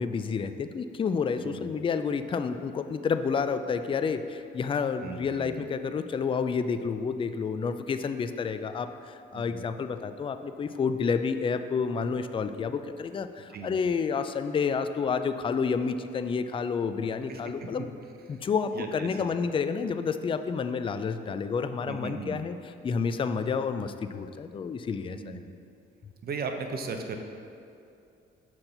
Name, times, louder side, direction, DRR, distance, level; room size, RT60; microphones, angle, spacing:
voice 1, 0.0-17.9 18.3-22.6 22.8-25.4, left 5 dB, 25° left, 10 dB, 0.3 m, -29 dB
voice 2, 5.0-5.7 9.3-9.6 13.5-13.7 17.3-17.7 18.3-18.4 18.7-19.3 21.9-22.4 25.1-25.5 26.2-27.2, right 4 dB, 50° right, 5 dB, 0.7 m, -37 dB
6.4 x 4.5 x 5.7 m, 2.6 s
cardioid pair, 90°, 20 cm